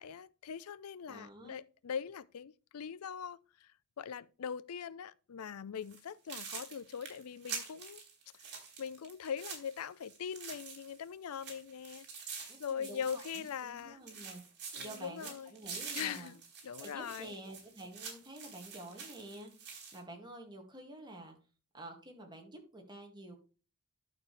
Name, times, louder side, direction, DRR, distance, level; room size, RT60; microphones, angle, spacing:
voice 1, 0.0-3.7 4.0-8.0 8.8-12.1 12.6-14.0 14.7-15.5 15.9-16.4 16.6-17.3, left 7 dB, 80° left, 0.5 m, -41 dB
voice 2, 1.1-1.6 12.5-14.4 14.8-16.3 16.8-21.4 21.7-23.4, right 1 dB, 20° right, 2.2 m, -49 dB
sound 1, 5.8-6.0 6.3-11.0 11.3-13.8 14.1-20.0, right 5 dB, 50° right, 4.0 m, -46 dB
11.5 x 6.5 x 3.3 m
head